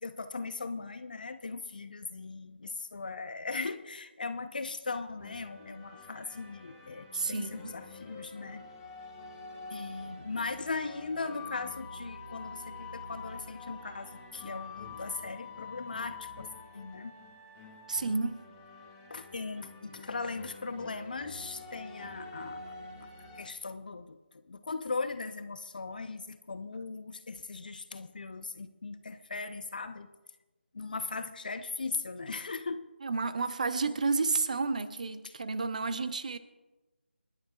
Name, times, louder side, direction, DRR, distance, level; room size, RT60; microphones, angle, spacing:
voice 1, 0.0-8.7 9.7-17.2 19.1-22.7 23.0-23.1 23.4-24.2 24.5-30.1 30.7-32.9 35.2-35.3, left 4 dB, 45° left, 0.9 m, -38 dB
sound 1, 5.2-23.5, left 4 dB, 10° left, 2.0 m, -47 dB
voice 2, 7.1-7.7 17.9-18.4 33.0-36.4, right 4 dB, 40° right, 0.9 m, -31 dB
29.5 x 10.0 x 2.4 m
figure-of-eight pair, 160°, 6 cm